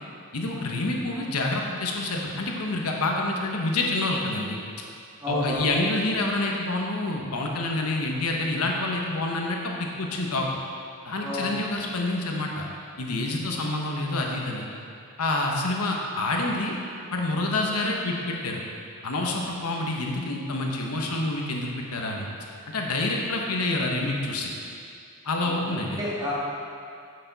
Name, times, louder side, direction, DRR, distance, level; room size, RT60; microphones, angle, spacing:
voice 1, 0.3-4.6 5.3-10.6 11.0-12.7 13.0-14.7 15.2-16.7 17.1-18.6 19.0-22.3 22.7-24.5 25.2-26.0, left 2 dB, 80° left, 0 dB, 1.0 m, -27 dB
voice 2, 5.2-5.6 11.2-11.5 25.4-26.3, left 1 dB, 15° right, -8 dB, 2.1 m, -30 dB
10.0 x 6.8 x 4.0 m, 2.4 s
head